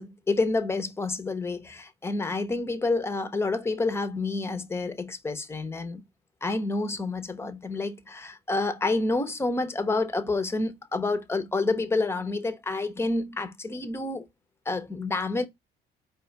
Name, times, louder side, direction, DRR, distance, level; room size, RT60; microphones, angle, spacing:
voice 1, 0.0-6.0 6.4-14.2 14.7-15.5, left 3 dB, 15° left, 0.9 m, -28 dB
4.9 x 2.4 x 4.4 m
cardioid pair, 110°, 17 cm